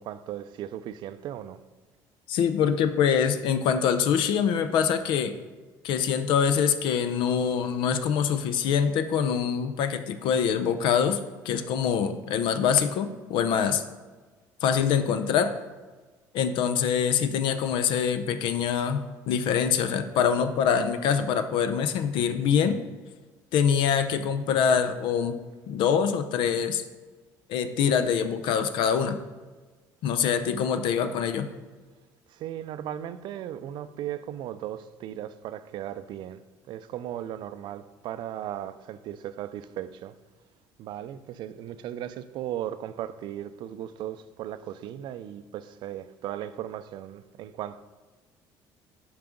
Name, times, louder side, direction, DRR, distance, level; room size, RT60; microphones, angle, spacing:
voice 1, 0.0-1.6 32.3-36.4 36.7-40.1 40.8-47.8, right 11 dB, 65° right, 13 dB, 0.4 m, -37 dB
voice 2, 2.3-5.3 5.8-11.2 11.4-13.8 14.6-15.5 16.3-22.8 23.5-25.4 25.7-26.8 27.5-29.2 30.0-31.5, left 7 dB, 70° left, 10 dB, 0.6 m, -24 dB
5.8 x 4.8 x 5.2 m, 1.3 s
supercardioid pair, 90°, 9 cm